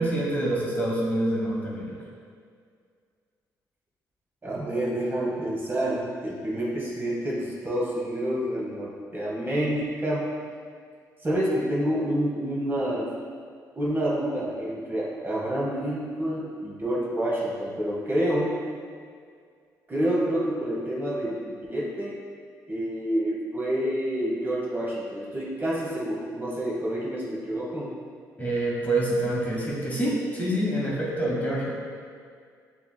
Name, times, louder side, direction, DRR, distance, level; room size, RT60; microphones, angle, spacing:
voice 1, 0.0-1.9 28.4-31.7, right 1 dB, 20° left, -5 dB, 1.2 m, -26 dB
voice 2, 4.4-10.2 11.2-13.1 13.8-18.5 19.9-22.2 22.7-27.9, right 1 dB, 30° right, -5 dB, 1.1 m, -28 dB
6.9 x 2.9 x 2.3 m, 2.1 s
supercardioid pair, 70°, 8 cm